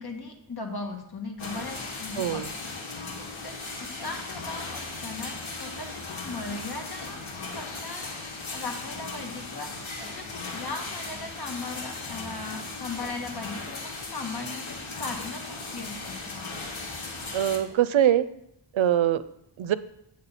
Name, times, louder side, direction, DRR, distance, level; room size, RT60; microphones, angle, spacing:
voice 1, 0.0-2.7 3.4-8.1 8.5-16.3, left 3 dB, 50° left, 3 dB, 1.7 m, -38 dB
sound 1, 1.4-17.6, left 3 dB, 80° left, 1.5 m, -37 dB
voice 2, 2.2-2.5 17.3-18.3 18.7-19.2 19.6-19.8, right 11 dB, 75° right, 15 dB, 0.5 m, -23 dB
8.3 x 7.6 x 4.2 m, 0.78 s
wide cardioid pair, 65°, 47 cm